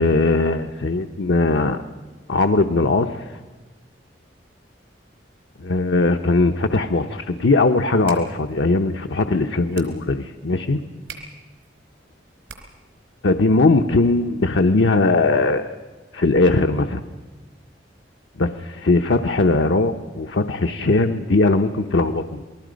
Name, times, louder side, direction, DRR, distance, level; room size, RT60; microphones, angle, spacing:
voice 1, 0.0-1.8 2.3-3.3 5.6-10.8 13.2-15.7 16.1-17.0 18.4-22.4, left 3 dB, 80° left, 5 dB, 0.8 m, -19 dB
sound 1, 7.9-13.0, right 5 dB, 85° right, 3.6 m, -45 dB
28.0 x 20.0 x 5.2 m, 1.3 s
head